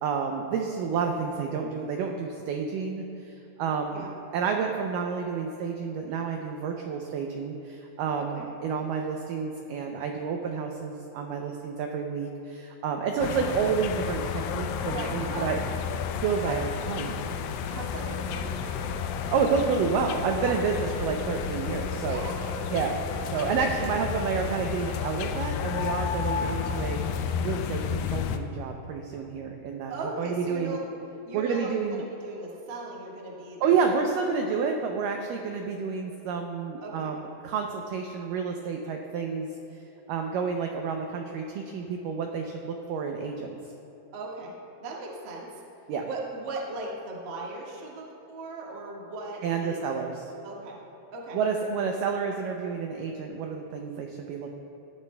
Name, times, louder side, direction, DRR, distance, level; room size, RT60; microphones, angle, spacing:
voice 1, 0.0-4.1 4.3-15.6 16.2-17.2 19.3-22.2 22.7-23.0 23.3-29.9 30.2-30.8 31.3-32.0 33.6-39.5 40.1-43.6 45.9-46.0 49.4-50.3 51.3-54.5, right 5 dB, 85° right, 3 dB, 1.9 m, -29 dB
sound 1, 13.2-28.4, left 7 dB, 80° left, 2.1 m, -31 dB
voice 2, 14.8-15.5 16.4-16.6 17.6-19.0 20.4-20.5 20.9-21.1 22.1-22.7 23.6-24.3 29.9-30.8 31.2-33.8 34.4-34.5 36.8-37.1 44.1-44.5 44.8-45.6 46.0-49.8 50.4-50.8 51.1-51.4, right 3 dB, 60° right, -3 dB, 1.2 m, -38 dB
18.5 x 11.5 x 2.2 m, 2.9 s
omnidirectional pair, 4.6 m